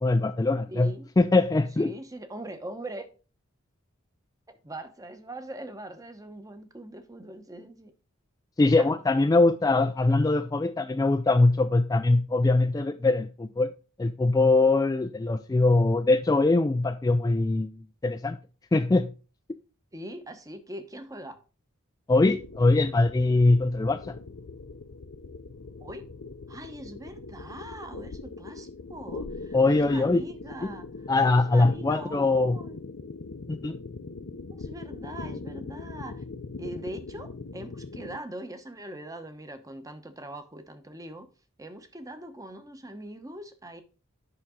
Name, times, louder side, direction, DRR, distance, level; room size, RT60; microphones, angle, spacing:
voice 1, 0.0-1.9 8.6-13.7 14.0-18.4 18.7-19.1 22.1-24.2 29.5-30.2 31.1-32.6 33.5-33.8, left 2 dB, 15° left, 0.3 m, -22 dB
voice 2, 0.7-1.1 1.8-3.1 4.6-7.9 8.8-9.0 19.9-21.4 25.8-26.0 26.5-32.8 34.5-36.2 36.6-41.3 41.6-43.8, right 1 dB, 15° right, 0.9 m, -41 dB
sound 1, 22.1-38.2, left 3 dB, 60° left, 0.6 m, -41 dB
8.8 x 5.9 x 3.7 m
head